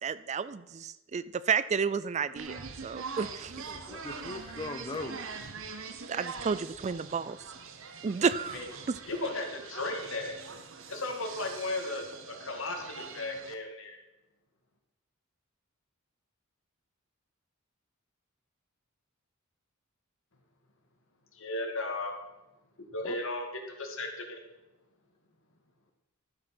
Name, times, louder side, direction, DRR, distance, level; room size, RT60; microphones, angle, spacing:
voice 1, 0.0-3.5 6.1-7.4 8.0-8.6 8.9-9.0, right 6 dB, 30° right, 16 dB, 0.4 m, -31 dB
sound 1, 2.4-13.5, right 5 dB, 65° right, 1.2 m, -43 dB
voice 2, 3.7-5.2 23.0-23.2, left 2 dB, 25° left, 5 dB, 0.7 m, -39 dB
voice 3, 9.1-10.3 10.9-14.0 21.3-22.1 22.8-24.4, left 2 dB, 65° left, 4 dB, 2.2 m, -35 dB
12.5 x 8.0 x 6.0 m, 1.0 s
head